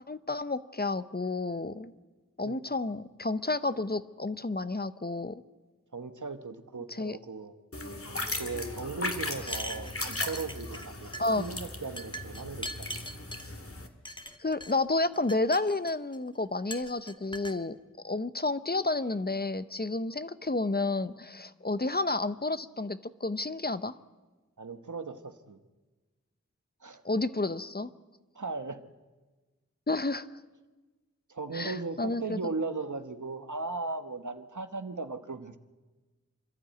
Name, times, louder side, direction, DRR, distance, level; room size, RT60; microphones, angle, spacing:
voice 1, 0.1-1.9 2.4-5.4 6.9-7.2 9.5-9.6 11.2-11.4 14.4-17.8 18.0-23.9 27.0-27.9 29.9-30.3 31.5-32.4, left 2 dB, 35° left, 14 dB, 0.7 m, -31 dB
voice 2, 5.9-7.6 8.3-11.1 11.4-13.0 24.6-25.6 26.8-27.0 28.3-28.8 31.3-35.6, right 3 dB, 80° right, 9 dB, 1.1 m, -37 dB
sound 1, 7.7-13.9, left 2 dB, 50° left, 1.8 m, -37 dB
sound 2, 9.4-10.9 11.1-11.5 12.0-13.5 14.0-14.7 15.1-16.2 16.7-17.6, equal, 15° left, 1.3 m, -41 dB
26.5 x 12.0 x 9.2 m, 1.3 s
wide cardioid pair, 40°, 29 cm